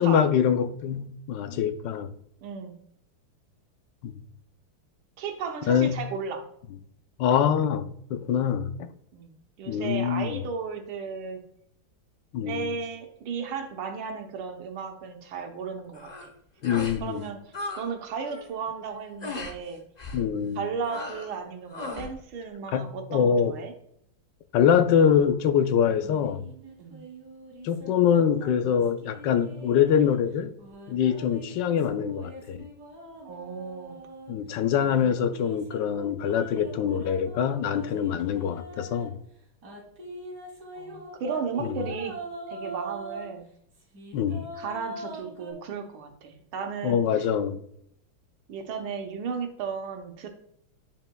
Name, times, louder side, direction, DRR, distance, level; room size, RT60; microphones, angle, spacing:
voice 1, 0.0-2.1 4.0-4.2 5.7-5.9 7.2-8.9 9.7-10.4 12.3-12.7 16.6-17.2 20.1-20.6 22.7-23.5 24.5-26.4 27.6-30.5 30.9-32.6 34.3-39.1 41.6-41.8 44.1-44.5 46.8-47.6, left 8 dB, 70° left, 1.2 m, -24 dB
voice 2, 2.4-2.8 5.2-6.5 8.3-8.6 9.1-11.4 12.4-16.3 17.0-19.8 20.6-23.7 26.8-27.0 33.2-34.0 40.7-42.2 42.5-43.5 44.3-47.0 48.5-50.3, right 5 dB, 90° right, 1.8 m, -35 dB
sound 1, 15.9-16.3 16.6-17.0 17.3-17.9 18.1-18.5 19.2-19.6 20.0-20.3 20.8-21.4 21.7-22.1, left 2 dB, 50° left, 0.5 m, -37 dB
sound 2, 25.9-30.2 30.6-34.3 34.8-39.1 39.6-43.3 43.7-45.5, right 1 dB, 55° right, 2.2 m, -42 dB
9.4 x 5.5 x 2.2 m
omnidirectional pair, 2.2 m